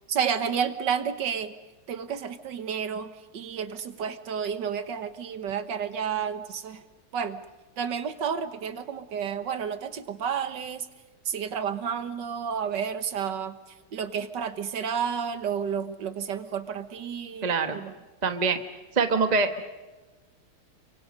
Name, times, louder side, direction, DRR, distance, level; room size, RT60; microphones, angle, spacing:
voice 1, 0.1-1.5 1.9-6.8 7.1-7.4 7.8-10.9 11.3-13.6 13.9-17.9, right 7 dB, 60° right, 11 dB, 1.8 m, -31 dB
voice 2, 17.4-17.8 18.2-18.6 18.9-19.5, right 4 dB, 25° right, 7 dB, 1.0 m, -24 dB
29.5 x 24.5 x 5.4 m, 1.2 s
omnidirectional pair, 2.3 m